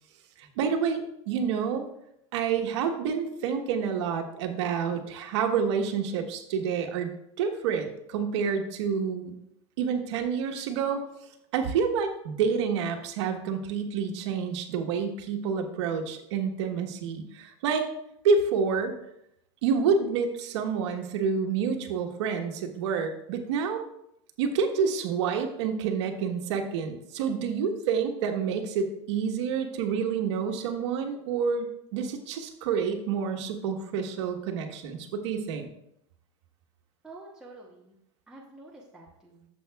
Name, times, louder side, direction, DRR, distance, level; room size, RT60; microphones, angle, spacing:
voice 1, 0.4-1.9 2.3-7.1 7.4-9.3 9.8-11.0 11.5-17.9 18.2-18.9 19.6-23.8 24.4-35.7, right 6 dB, 70° right, 4 dB, 1.2 m, -28 dB
voice 2, 37.0-38.0 38.3-39.5, right 2 dB, 5° right, -4 dB, 0.9 m, -48 dB
11.0 x 7.3 x 2.3 m, 0.78 s
supercardioid pair, 145°, 15 cm